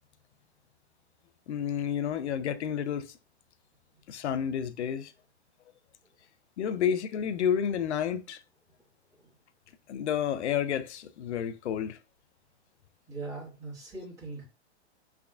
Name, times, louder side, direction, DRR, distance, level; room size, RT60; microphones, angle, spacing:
voice 1, 1.5-3.1 4.1-5.1 6.6-8.4 9.9-12.0, left 8 dB, 80° left, 0.5 m, -30 dB
voice 2, 13.1-14.4, right 3 dB, 10° right, 2.1 m, -41 dB
3.5 x 3.4 x 2.3 m
hypercardioid pair, 125°, 33 cm